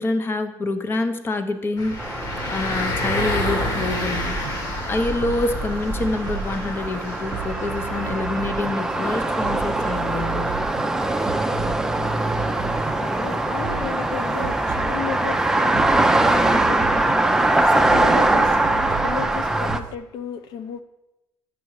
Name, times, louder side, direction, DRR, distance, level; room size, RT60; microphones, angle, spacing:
voice 1, 0.0-2.2 2.5-4.5 4.9-10.6, left 2 dB, 30° left, 9 dB, 0.8 m, -26 dB
sound 1, 1.8-14.8, left 1 dB, 50° left, 2.2 m, -31 dB
sound 2, 2.0-19.8, right 2 dB, 5° right, 0.5 m, -23 dB
sound 3, 3.1-19.9, right 10 dB, 80° right, 0.4 m, -36 dB
voice 2, 11.6-12.2 12.8-20.8, left 8 dB, 75° left, 9 dB, 0.5 m, -34 dB
9.5 x 6.1 x 4.8 m, 0.95 s
cardioid pair, 115°, 7 cm